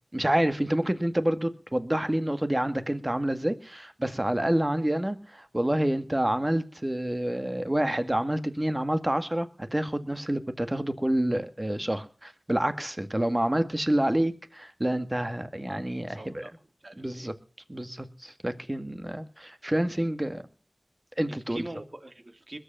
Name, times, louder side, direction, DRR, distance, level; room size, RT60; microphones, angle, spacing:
voice 1, 0.1-16.4 17.0-17.3 17.7-20.4 21.2-21.6, right 1 dB, 20° right, 10 dB, 1.8 m, -28 dB
voice 2, 16.2-16.5 16.8-17.3 20.0-20.1 21.3-22.6, right 2 dB, 50° right, 7 dB, 2.6 m, -43 dB
21.0 x 8.0 x 7.3 m, 0.38 s
wide cardioid pair, 55°, 0 cm